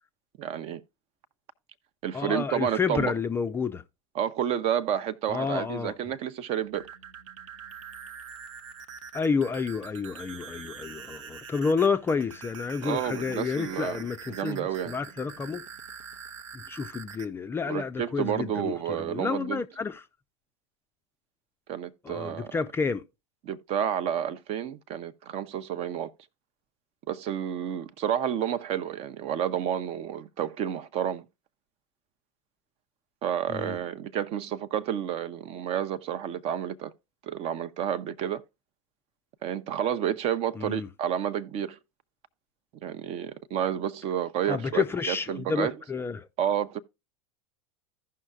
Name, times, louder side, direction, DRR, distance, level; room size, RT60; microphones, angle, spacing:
voice 1, 0.4-0.8 2.0-3.1 4.1-6.9 12.8-14.0 14.3-14.9 17.7-19.6 21.7-22.5 23.4-26.1 27.1-31.2 33.2-36.9 37.2-38.4 39.4-41.8 42.8-45.7 46.4-46.8, right 9 dB, 40° right, 0.6 m, -30 dB
voice 2, 2.1-3.8 5.3-5.9 9.1-15.6 16.5-20.0 22.0-23.0 33.5-33.8 40.6-40.9 44.5-46.3, left 5 dB, 15° left, 0.4 m, -30 dB
sound 1, 6.6-17.3, right 7 dB, 75° right, 0.7 m, -44 dB
15.5 x 5.6 x 2.3 m
hypercardioid pair, 95°, 17 cm